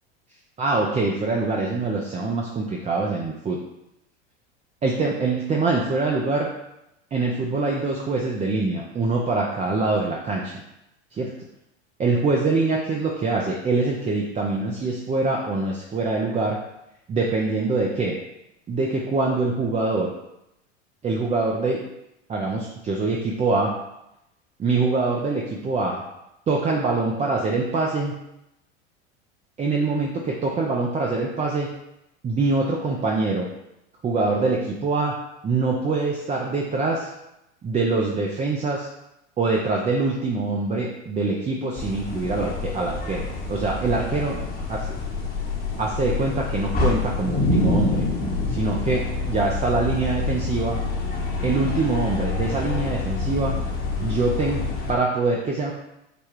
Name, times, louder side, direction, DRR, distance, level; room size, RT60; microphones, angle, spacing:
voice 1, 0.6-3.6 4.8-6.5 7.1-10.5 11.1-11.3 12.0-16.6 17.1-18.1 18.7-20.1 21.0-21.8 22.3-23.7 24.6-26.0 26.5-28.1 29.6-31.7 32.2-33.5 34.0-35.2 35.4-37.1 37.6-38.9 39.4-44.4 44.7-44.8 45.8-48.0 48.5-50.8 51.4-53.6 54.0-55.7, right 3 dB, 20° right, -1 dB, 0.5 m, -24 dB
sound 1, 41.8-54.9, left 3 dB, 25° left, 1.0 m, -27 dB
4.9 x 2.3 x 4.6 m, 0.87 s
hypercardioid pair, 90°, 35 cm